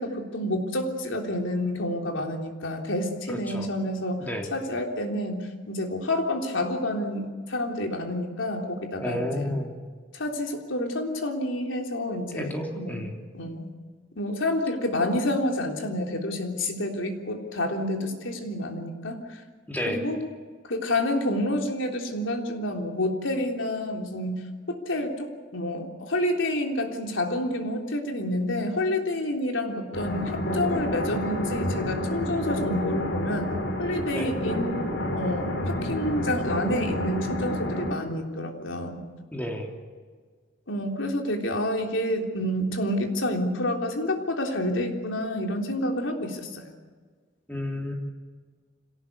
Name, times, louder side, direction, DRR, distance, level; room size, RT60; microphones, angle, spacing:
voice 1, 0.0-9.5 10.1-13.0 13.3-13.7 14.1-19.4 19.9-20.2 20.7-33.5 33.8-34.7 35.1-39.0 40.7-46.7, left 1 dB, 85° left, 3 dB, 3.6 m, -29 dB
voice 2, 3.3-3.7 4.2-4.5 9.0-9.7 12.3-13.2 19.7-20.1 34.1-34.3 39.3-39.7 47.5-47.9, left 1 dB, 10° left, 1 dB, 3.3 m, -31 dB
sound 1, 29.9-37.9, left 1 dB, 65° left, 4.6 m, -29 dB
26.5 x 18.0 x 8.4 m, 1.5 s
head